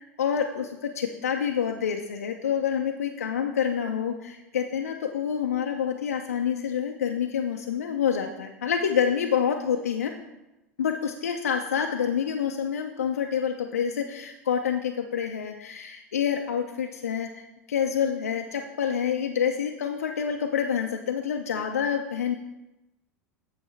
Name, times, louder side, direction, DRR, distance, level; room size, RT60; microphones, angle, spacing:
voice 1, 0.2-10.1 10.8-22.3, left 8 dB, 75° left, 4 dB, 0.5 m, -27 dB
8.0 x 7.0 x 3.2 m, 0.98 s
figure-of-eight pair, 85°, 8 cm